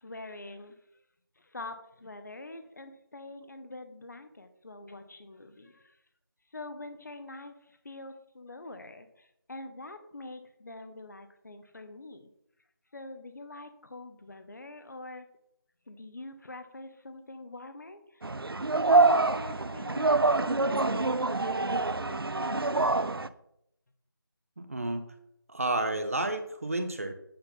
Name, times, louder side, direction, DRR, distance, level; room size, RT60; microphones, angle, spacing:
voice 1, 0.0-0.8 1.4-6.0 6.5-12.3 12.9-15.2 15.9-18.4 18.9-22.8, left 2 dB, 50° left, 9 dB, 0.9 m, -44 dB
sound 1, 18.2-23.3, right 3 dB, 80° right, 0.5 m, -26 dB
voice 2, 24.6-25.0 25.5-27.1, right 2 dB, 40° right, 8 dB, 0.7 m, -31 dB
8.8 x 5.7 x 3.8 m, 0.77 s
figure-of-eight pair, 165°, 12 cm